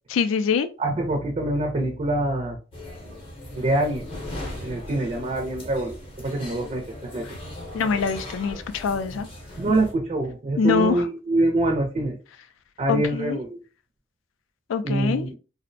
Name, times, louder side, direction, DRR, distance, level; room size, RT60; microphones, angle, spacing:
voice 1, 0.1-0.7 7.7-9.3 10.6-11.0 12.9-13.4 14.7-15.3, left 5 dB, 85° left, 0.3 m, -24 dB
voice 2, 0.8-2.6 3.6-4.1 4.6-7.3 9.6-12.2 12.8-13.6 14.8-15.4, right 2 dB, 35° right, 0.4 m, -25 dB
sound 1, 2.7-9.9, left 1 dB, 30° left, 0.6 m, -38 dB
2.5 x 2.0 x 2.5 m
head